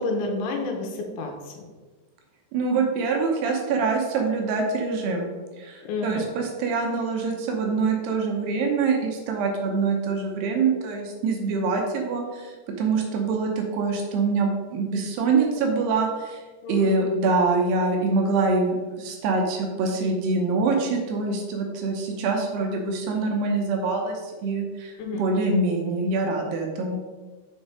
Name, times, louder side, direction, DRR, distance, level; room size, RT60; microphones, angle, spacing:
voice 1, 0.0-1.5 5.8-6.3 16.6-17.1 25.0-25.3, left 3 dB, 90° left, 2 dB, 3.4 m, -30 dB
voice 2, 2.5-5.3 5.6-16.4 16.7-27.0, right 4 dB, 75° right, 2 dB, 2.7 m, -25 dB
7.2 x 4.6 x 4.9 m, 1.3 s
omnidirectional pair, 5.2 m